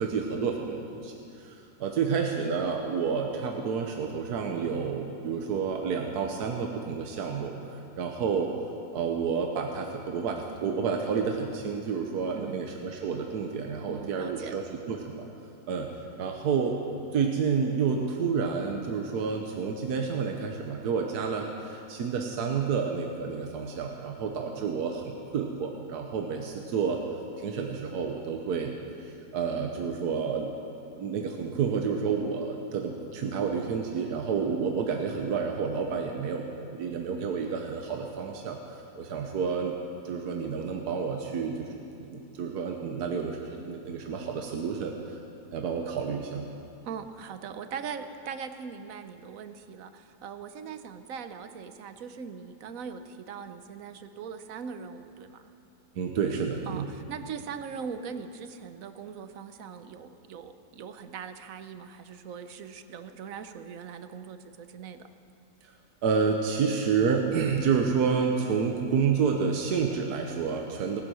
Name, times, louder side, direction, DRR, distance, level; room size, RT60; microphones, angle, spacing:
voice 1, 0.0-8.5 8.9-14.6 14.9-15.3 15.7-15.9 16.2-16.8 17.1-27.0 27.4-28.7 29.0-30.5 31.0-39.8 40.0-45.2 45.5-46.5 56.0-56.9 65.6-65.7 66.0-71.0, right 6 dB, 80° right, 2 dB, 1.5 m, -29 dB
voice 2, 12.3-12.7 13.9-14.6 46.8-55.5 56.7-65.1, right 6 dB, 65° right, 10 dB, 1.1 m, -40 dB
18.5 x 10.5 x 6.2 m, 2.8 s
omnidirectional pair, 1.7 m